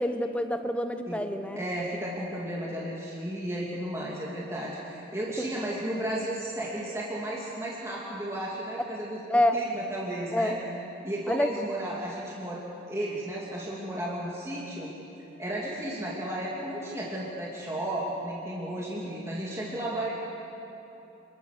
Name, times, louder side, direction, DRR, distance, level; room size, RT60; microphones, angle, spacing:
voice 1, 0.0-1.6 5.4-5.5 9.3-9.6 10.3-10.6 11.3-11.5, left 1 dB, 5° left, 7 dB, 0.9 m, -27 dB
voice 2, 1.5-10.5 11.0-14.9 15.4-20.1, right 1 dB, 15° right, -5 dB, 2.8 m, -34 dB
28.0 x 22.0 x 6.7 m, 2.9 s
head